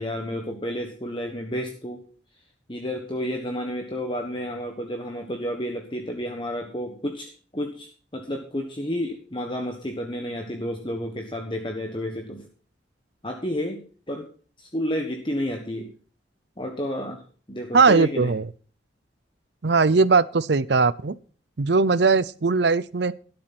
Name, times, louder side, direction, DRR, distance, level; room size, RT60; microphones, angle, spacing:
voice 1, 0.0-2.0 2.7-12.5 13.2-13.8 14.1-14.3 14.6-15.9 16.6-17.2 17.5-18.3, equal, 25° left, 1.4 m, -31 dB
voice 2, 17.7-18.5 19.6-21.2 21.6-23.1, right 4 dB, 60° right, 0.6 m, -19 dB
13.0 x 10.5 x 4.3 m
head